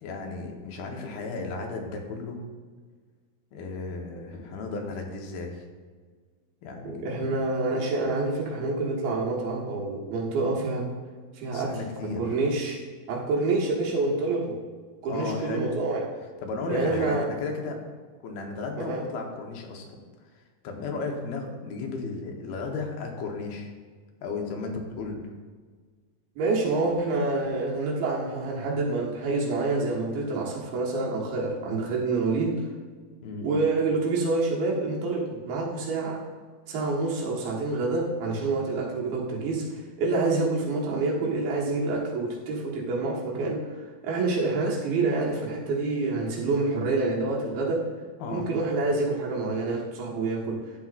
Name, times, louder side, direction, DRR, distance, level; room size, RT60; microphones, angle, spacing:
voice 1, 0.0-2.4 3.5-5.6 6.6-7.3 11.5-12.4 15.0-15.7 16.4-17.8 18.2-20.0 20.6-23.7 24.2-25.4 33.2-33.5 48.2-48.5, left 3 dB, 80° left, 2 dB, 2.9 m, -34 dB
voice 2, 6.8-10.9 11.3-11.8 12.2-12.8 13.1-14.6 15.0-16.1 16.7-17.3 18.8-19.0 26.4-32.7 33.4-36.3 36.7-39.7 40.0-43.6 44.0-47.9 48.3-50.6, right 3 dB, 80° right, -3 dB, 3.3 m, -27 dB
12.0 x 8.4 x 2.5 m, 1.5 s
omnidirectional pair, 4.2 m